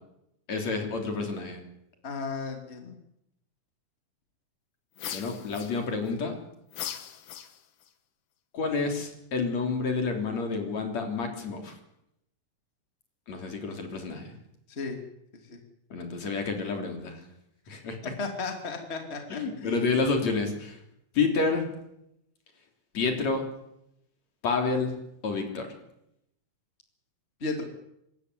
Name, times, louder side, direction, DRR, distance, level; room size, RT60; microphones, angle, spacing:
voice 1, 0.5-1.6 5.1-6.4 8.5-11.8 13.3-14.4 15.9-17.2 17.7-18.1 19.3-20.8 21.1-21.7 22.9-23.5 24.4-24.9 25.2-25.7, left 4 dB, 60° left, 4 dB, 4.6 m, -29 dB
voice 2, 2.0-3.0 14.7-15.0 15.5-15.6 18.2-19.8 27.4-27.6, left 3 dB, 20° left, 4 dB, 2.8 m, -34 dB
sound 1, 5.0-6.1 6.7-7.9, left 10 dB, 90° left, 3.0 m, -39 dB
25.5 x 13.5 x 9.7 m, 0.82 s
omnidirectional pair, 3.6 m